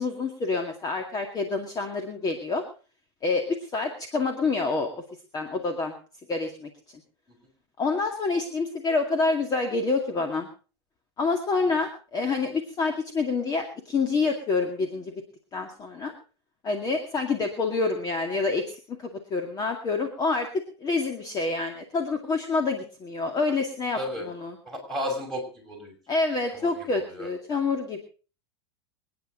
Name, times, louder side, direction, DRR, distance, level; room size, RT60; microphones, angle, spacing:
voice 1, 0.0-2.6 3.2-4.9 5.3-5.9 6.3-6.7 7.8-10.5 11.2-15.1 15.5-16.1 16.6-20.5 20.8-24.6 26.1-28.0, left 3 dB, 25° left, 4 dB, 2.2 m, -27 dB
voice 2, 23.9-24.3 24.6-25.9 26.5-27.3, left 1 dB, ahead, 0 dB, 6.1 m, -34 dB
25.5 x 9.8 x 4.0 m, 0.37 s
hypercardioid pair, 115°, 14 cm